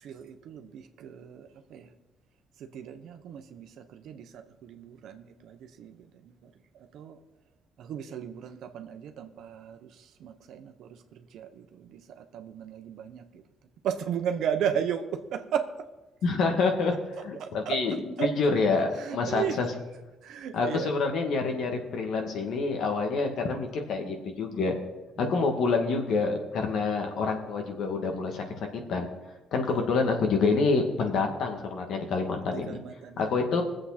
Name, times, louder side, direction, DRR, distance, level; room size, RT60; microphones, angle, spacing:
voice 1, 0.0-1.9 2.6-7.2 7.8-13.4 13.8-15.9 16.9-18.4 18.9-20.9 25.2-25.5 29.7-30.4 31.3-31.5 32.5-33.4, right 8 dB, 75° right, 7 dB, 1.1 m, -36 dB
voice 2, 16.2-16.9 17.2-19.7 20.5-24.8 25.2-29.1 29.5-32.7 33.2-33.6, left 4 dB, 70° left, 3 dB, 2.3 m, -27 dB
21.0 x 7.7 x 4.3 m, 1.1 s
cardioid pair, 115°, 0 cm